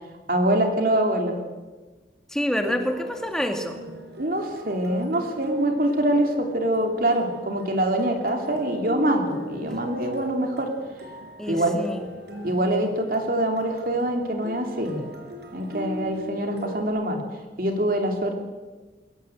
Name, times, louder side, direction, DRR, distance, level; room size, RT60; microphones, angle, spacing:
voice 1, 0.3-1.4 2.6-2.8 4.2-10.7 11.5-11.7 12.4-15.0 15.5-17.2 17.6-18.4, right 1 dB, 50° right, 3 dB, 3.0 m, -24 dB
voice 2, 2.3-3.9 11.4-12.0, equal, 5° left, 5 dB, 2.0 m, -27 dB
sound 1, 2.6-16.8, right 1 dB, 65° right, 4.7 m, -39 dB
22.0 x 17.5 x 7.9 m, 1.3 s
head